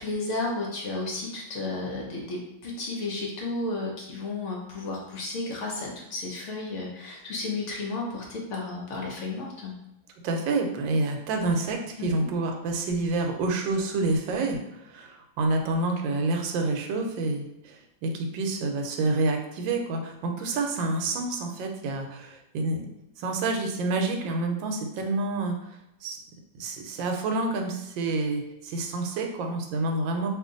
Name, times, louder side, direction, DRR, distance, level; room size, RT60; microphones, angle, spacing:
voice 1, 0.0-9.8 12.0-12.3, left 3 dB, 60° left, -2 dB, 0.8 m, -33 dB
voice 2, 10.2-22.8 23.2-25.5 26.0-26.2 26.6-30.3, right 2 dB, 85° right, 3 dB, 1.3 m, -28 dB
2.9 x 2.5 x 3.7 m, 0.88 s
omnidirectional pair, 2.0 m